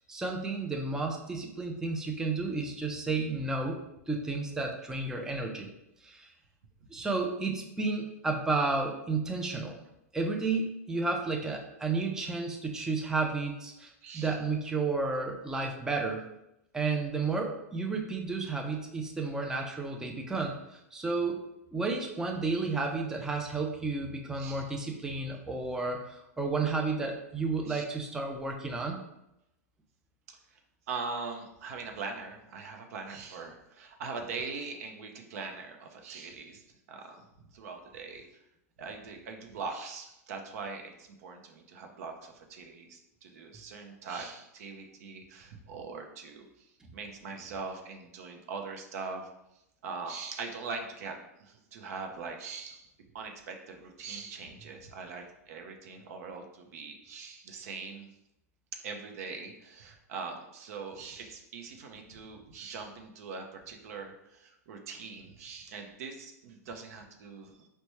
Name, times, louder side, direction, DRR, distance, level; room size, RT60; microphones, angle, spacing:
voice 1, 0.1-5.7 6.0-6.3 6.9-9.8 10.1-16.2 16.7-21.4 21.7-29.0, right 3 dB, 5° right, 1 dB, 0.4 m, -32 dB
voice 2, 14.0-14.4 24.3-24.6 27.7-27.8 30.3-30.4 30.9-38.2 38.8-49.3 49.8-52.9 53.1-58.1 58.8-67.7, right 4 dB, 65° right, 3 dB, 0.6 m, -42 dB
4.2 x 2.2 x 3.0 m, 0.85 s
hypercardioid pair, 120°, 9 cm